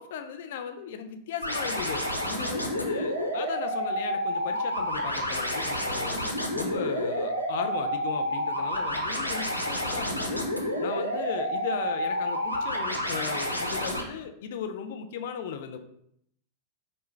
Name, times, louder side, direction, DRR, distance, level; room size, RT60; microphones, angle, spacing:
voice 1, 0.0-6.2 6.5-10.5 10.8-15.8, left 7 dB, 55° left, 7 dB, 0.4 m, -37 dB
sound 1, 1.4-14.0, equal, 90° right, 0.5 m, -29 dB
5.0 x 2.2 x 3.1 m, 0.71 s
figure-of-eight pair, 90°, 0 cm